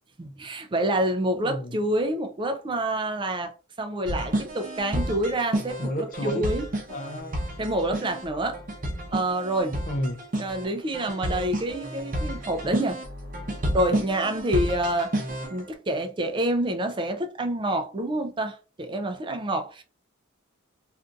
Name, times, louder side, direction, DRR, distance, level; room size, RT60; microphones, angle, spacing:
voice 1, 0.2-6.7 7.6-8.6 9.1-9.8 10.4-13.0 13.7-15.1 15.5-19.8, right 1 dB, 25° right, 0.4 m, -27 dB
voice 2, 1.4-1.8 5.8-6.5 6.9-7.5 9.9-10.2, equal, 40° left, 0.5 m, -31 dB
sound 1, 4.1-15.6, right 1 dB, 40° right, 0.8 m, -31 dB
2.6 x 2.4 x 3.7 m
head